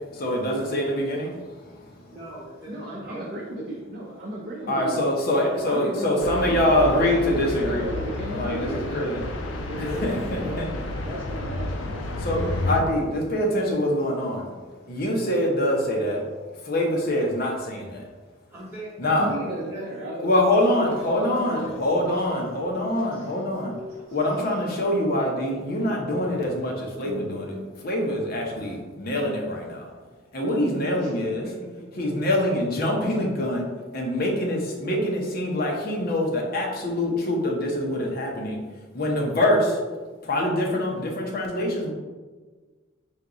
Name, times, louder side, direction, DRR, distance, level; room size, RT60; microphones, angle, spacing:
voice 1, 0.1-1.9 4.7-7.9 8.3-9.2 9.8-10.7 12.2-14.5 14.9-16.2 16.6-18.1 19.0-19.4 20.2-23.7 24.1-27.6 27.8-29.9 30.3-31.5 31.9-33.7 33.9-38.6 38.9-39.8 40.2-41.9, left 1 dB, 45° left, -1 dB, 0.8 m, -25 dB
voice 2, 2.1-3.3 18.5-20.1 20.8-20.9 21.5-22.0, right 1 dB, 10° right, -10 dB, 1.2 m, -41 dB
voice 3, 2.7-5.0 5.3-9.1 9.6-10.7 11.0-12.0 19.2-21.9 22.3-22.4 23.1-23.3 24.1-24.2 30.9-31.1 31.4-31.5, right 1 dB, 50° right, -5 dB, 0.6 m, -35 dB
sound 1, 6.2-12.8, left 1 dB, 65° left, 0.4 m, -31 dB
sound 2, 20.4-28.9 29.4-29.5, left 1 dB, 85° left, 1.3 m, -46 dB
4.5 x 2.3 x 3.8 m, 1.4 s
head